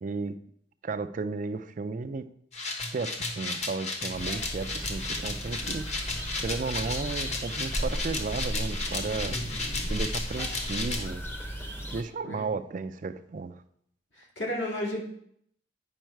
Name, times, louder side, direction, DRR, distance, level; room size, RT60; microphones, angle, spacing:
voice 1, 0.0-0.4 0.8-2.3 2.9-5.9 6.4-9.4 9.8-11.2 11.9-13.6, right 4 dB, 45° right, 10 dB, 0.4 m, -34 dB
sound 1, 2.5-11.0, left 3 dB, 35° left, 1.1 m, -34 dB
sound 2, 4.1-12.0, equal, 10° left, 0.8 m, -35 dB
voice 2, 9.2-9.8 12.2-12.5 14.1-15.1, left 1 dB, 70° left, -3 dB, 2.6 m, -34 dB
9.0 x 5.5 x 4.5 m, 0.71 s
head